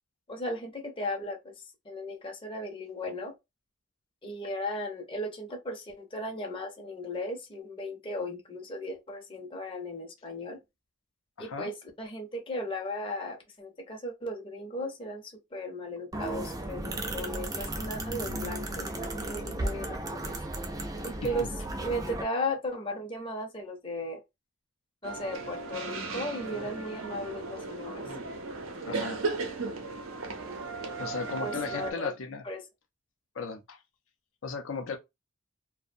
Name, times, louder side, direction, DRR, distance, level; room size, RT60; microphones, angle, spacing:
voice 1, 0.3-1.5 1.8-3.3 4.2-10.6 11.4-20.4 21.0-21.5 21.8-24.2 25.0-28.1 31.4-32.1 32.4-32.6, left 1 dB, 25° left, 0.6 m, -36 dB
voice 2, 11.4-11.7 28.8-29.2 31.0-32.4 33.3-33.8 34.4-35.0, left 4 dB, 75° left, 0.5 m, -36 dB
sound 1, 16.1-22.2, right 2 dB, 20° right, 0.4 m, -35 dB
sound 2, 25.0-31.9, right 3 dB, 90° right, 0.6 m, -36 dB
2.4 x 2.1 x 2.6 m
head